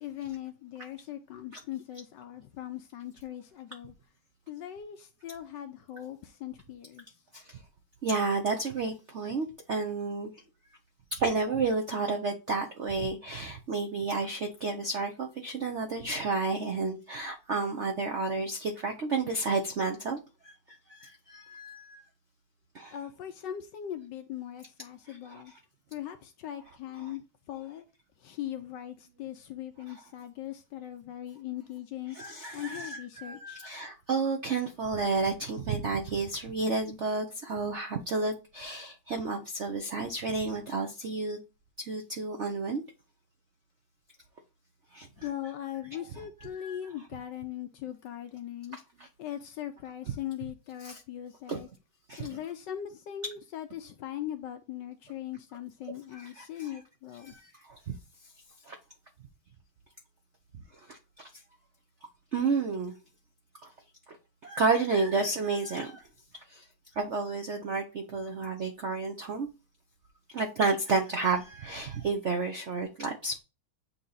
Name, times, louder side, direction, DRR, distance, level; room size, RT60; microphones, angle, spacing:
voice 1, 0.0-3.9 4.5-7.1 22.9-25.5 25.9-27.9 28.2-33.6 45.2-48.8 49.2-51.7 52.2-57.3, left 11 dB, 70° left, 1.1 m, -40 dB
voice 2, 8.0-10.3 11.2-22.0 22.7-22.9 25.1-25.4 32.1-41.4 41.8-42.8 44.9-45.1 46.5-46.8 50.8-51.0 51.5-51.6 52.1-52.4 56.1-56.5 57.3-58.0 58.6-58.7 60.7-61.3 62.3-62.9 63.6-63.7 64.4-66.1 66.5-66.6 66.9-69.5 70.3-73.4, right 4 dB, 65° right, 0.7 m, -31 dB
8.3 x 2.9 x 3.9 m
omnidirectional pair, 2.3 m